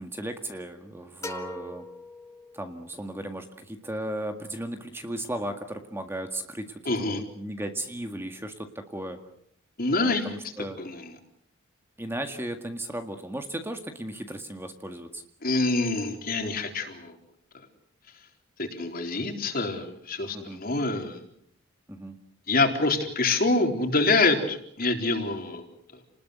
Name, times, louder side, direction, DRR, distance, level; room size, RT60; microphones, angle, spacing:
voice 1, 0.0-1.8 2.5-9.2 10.0-10.8 12.0-15.2 20.3-20.6 21.9-22.1, right 1 dB, 10° right, 6 dB, 1.9 m, -36 dB
sound 1, 1.2-3.0, left 1 dB, 15° left, 2.0 m, -40 dB
voice 2, 6.9-7.2 9.8-10.3 10.8-11.1 15.4-17.2 18.6-21.3 22.5-25.7 25.9-26.0, left 3 dB, 45° left, 4 dB, 4.0 m, -26 dB
30.0 x 20.0 x 8.2 m, 0.70 s
head